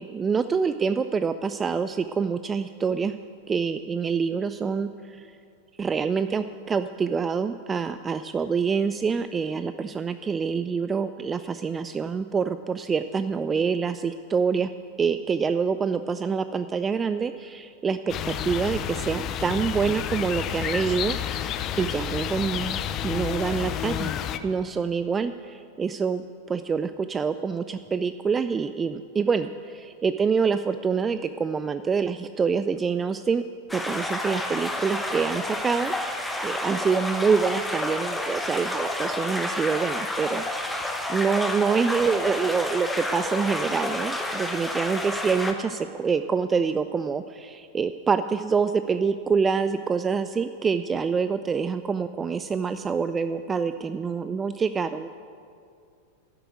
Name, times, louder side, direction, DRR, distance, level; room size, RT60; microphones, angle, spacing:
voice 1, 0.0-3.1 3.5-5.3 5.8-14.7 15.0-21.3 21.8-24.1 24.4-33.4 33.7-35.9 36.4-40.4 41.1-55.1, right 5 dB, 20° right, 11 dB, 0.3 m, -26 dB
sound 1, 18.1-24.4, left 9 dB, 35° left, 0.6 m, -30 dB
sound 2, 33.7-45.5, left 1 dB, 5° left, 1.1 m, -30 dB
11.5 x 7.7 x 9.2 m, 2.4 s
figure-of-eight pair, 90°, 0 cm